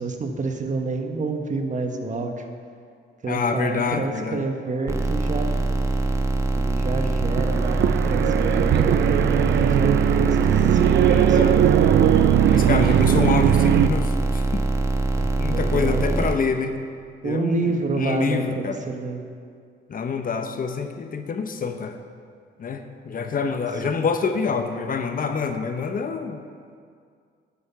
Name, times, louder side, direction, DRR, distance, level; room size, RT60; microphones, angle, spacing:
voice 1, 0.0-2.5 3.2-5.6 6.5-12.1 15.2-16.2 17.2-19.2 23.8-24.0, right 3 dB, 40° right, 4 dB, 1.2 m, -29 dB
voice 2, 3.3-4.4 11.1-11.6 12.5-14.7 15.4-16.8 17.2-17.7 18.0-18.8 19.9-22.0 22.6-26.4, left 5 dB, 45° left, 6 dB, 0.8 m, -26 dB
sound 1, 4.9-16.3, right 2 dB, 15° right, 1.0 m, -23 dB
sound 2, 7.2-13.9, right 12 dB, 65° right, 0.4 m, -19 dB
9.7 x 8.3 x 5.8 m, 2.2 s
cardioid pair, 90°, 20 cm